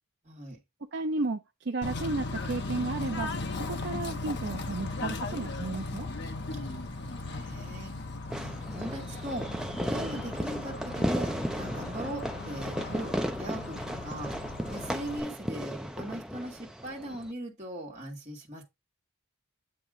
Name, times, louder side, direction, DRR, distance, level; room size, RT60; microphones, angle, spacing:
voice 1, 0.2-0.6 6.4-7.9 8.4-9.5 9.9-14.3 14.7-18.6, right 1 dB, 30° right, 1.8 m, -39 dB
voice 2, 0.9-6.1, right 3 dB, 55° right, 0.5 m, -33 dB
Bird / Train, 1.8-15.2, left 3 dB, 50° left, 0.8 m, -37 dB
Fireworks, 8.3-17.3, equal, 5° right, 0.4 m, -35 dB
8.8 x 2.9 x 4.8 m
head